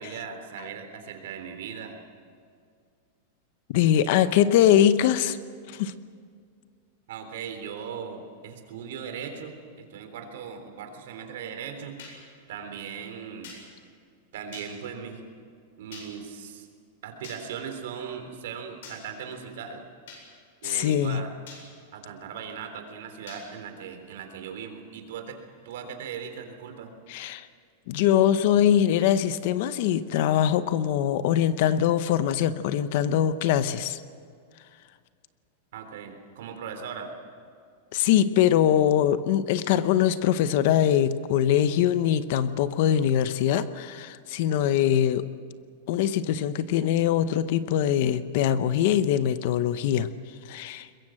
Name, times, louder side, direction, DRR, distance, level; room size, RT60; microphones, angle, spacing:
voice 1, 0.0-1.9 7.1-11.9 12.5-13.5 14.3-15.2 15.8-16.7 17.0-19.8 20.6-21.3 21.9-25.4 25.6-26.9 35.7-37.1, right 7 dB, 65° right, 6 dB, 3.5 m, -38 dB
voice 2, 3.7-5.4 5.7-5.9 20.6-21.2 27.1-27.5 27.9-34.0 37.9-45.2 45.9-50.1 50.5-50.9, left 10 dB, 45° left, 13 dB, 0.8 m, -22 dB
sound 1, 12.0-12.1 13.4-13.6 14.5-14.7 15.9-16.1 17.2-17.4 18.8-19.0 20.1-20.2 21.5-21.6 23.3-23.4, left 5 dB, 65° left, 7.9 m, -43 dB
22.0 x 22.0 x 7.7 m, 2.2 s
supercardioid pair, 175°, 0 cm